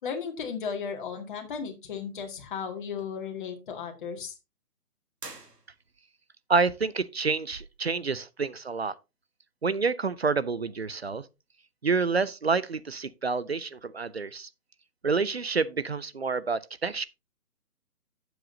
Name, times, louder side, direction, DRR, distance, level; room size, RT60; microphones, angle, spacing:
voice 1, 0.0-4.3, left 6 dB, 30° left, 2.1 m, -35 dB
sound 1, 5.2-6.2, right 3 dB, 90° right, 2.1 m, -46 dB
voice 2, 6.5-8.9 9.6-11.2 11.8-14.5 15.0-17.0, right 4 dB, 45° right, 0.5 m, -28 dB
11.5 x 7.9 x 2.7 m
figure-of-eight pair, 150°, 46 cm